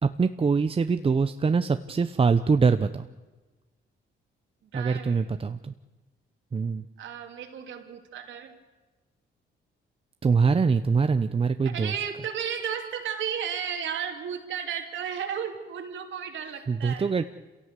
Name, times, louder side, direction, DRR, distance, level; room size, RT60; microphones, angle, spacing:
voice 1, 0.0-3.1 4.7-5.7 6.5-6.8 10.2-11.9 16.7-17.2, right 5 dB, 30° right, 10 dB, 0.7 m, -23 dB
voice 2, 4.7-5.3 7.0-8.5 11.6-17.1, right 8 dB, 75° right, 4 dB, 2.8 m, -34 dB
27.0 x 16.5 x 8.3 m, 1.2 s
cardioid pair, 90°, 20 cm